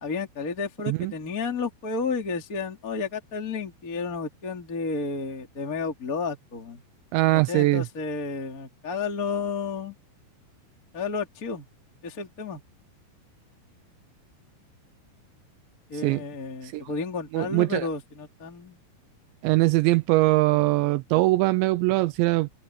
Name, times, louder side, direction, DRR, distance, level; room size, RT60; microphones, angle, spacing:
voice 1, 0.0-6.8 7.5-9.9 10.9-11.6 12.0-12.6 15.9-18.8, left 4 dB, 20° left, 3.0 m, -31 dB
voice 2, 7.1-7.9 16.0-16.2 16.7-16.8 17.3-17.9 19.4-22.5, right 19 dB, 85° right, 2.6 m, -22 dB
omnidirectional pair, 5.6 m